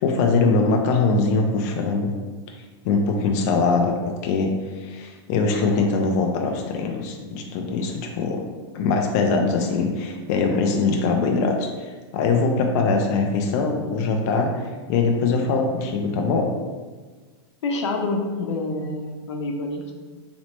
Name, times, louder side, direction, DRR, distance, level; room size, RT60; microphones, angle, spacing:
voice 1, 0.0-2.1 2.8-3.9 4.2-8.4 8.7-16.5, left 4 dB, 40° left, 2 dB, 0.4 m, -22 dB
voice 2, 17.6-19.9, left 2 dB, 90° left, 2 dB, 0.8 m, -27 dB
4.1 x 3.0 x 3.0 m, 1.4 s
supercardioid pair, 165°, 14 cm